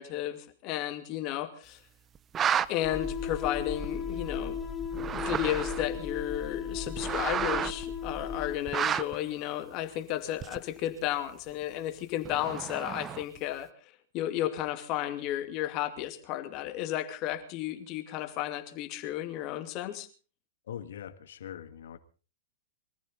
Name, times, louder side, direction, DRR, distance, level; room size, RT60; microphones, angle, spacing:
voice 1, 0.0-1.8 2.7-4.6 5.1-13.7 14.1-20.1, left 13 dB, 45° left, 7 dB, 2.5 m, -33 dB
sound 1, 2.1-2.7 3.8-3.9 4.8-6.0 6.7-7.8 8.7-9.2 10.4-10.8 12.2-13.4, right 8 dB, 25° right, 0.8 m, -31 dB
sound 2, 2.8-8.6, left 6 dB, 15° left, 3.3 m, -36 dB
voice 2, 20.7-22.0, left 9 dB, 70° left, 11 dB, 1.8 m, -42 dB
24.0 x 14.5 x 4.0 m, 0.36 s
hypercardioid pair, 110°, 0 cm